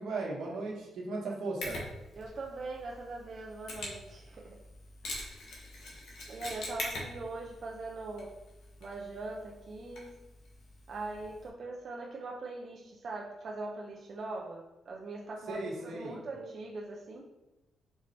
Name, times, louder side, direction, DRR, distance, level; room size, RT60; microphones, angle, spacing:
voice 1, 0.0-1.8 15.5-16.2, right 2 dB, 85° right, -3 dB, 1.2 m, -36 dB
Mechanisms, 1.6-11.5, left 1 dB, 75° left, 1.2 m, -44 dB
voice 2, 2.2-4.6 6.2-8.3 8.8-10.2 10.9-17.3, right 2 dB, 50° right, -2 dB, 0.5 m, -41 dB
4.6 x 4.2 x 2.6 m, 1.0 s
cardioid pair, 110°, 0 cm